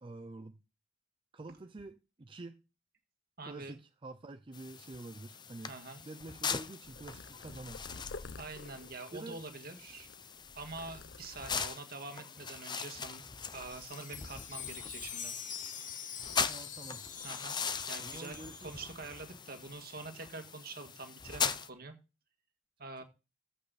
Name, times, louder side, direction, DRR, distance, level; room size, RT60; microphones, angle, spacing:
voice 1, 0.0-0.6 1.3-2.7 3.4-5.8 6.1-7.8 9.1-9.4 11.5-11.6 16.5-17.0 18.0-18.8 23.0-23.1, right 2 dB, 25° right, 0.5 m, -47 dB
voice 2, 3.4-3.7 5.6-6.0 8.4-10.1 10.5-13.2 13.5-15.3 17.2-17.6 17.9-21.9 22.8-23.0, right 3 dB, 50° right, 1.8 m, -45 dB
sound 1, 4.5-21.7, left 6 dB, 25° left, 0.6 m, -41 dB
Purr, 6.8-11.7 12.3-12.7 13.0-14.2 14.6-16.7 17.0-18.3 18.5-18.8 19.5-19.8, left 3 dB, 60° left, 0.6 m, -52 dB
Wind chime, 13.2-19.2, left 8 dB, 45° left, 1.1 m, -45 dB
14.5 x 5.4 x 4.1 m
head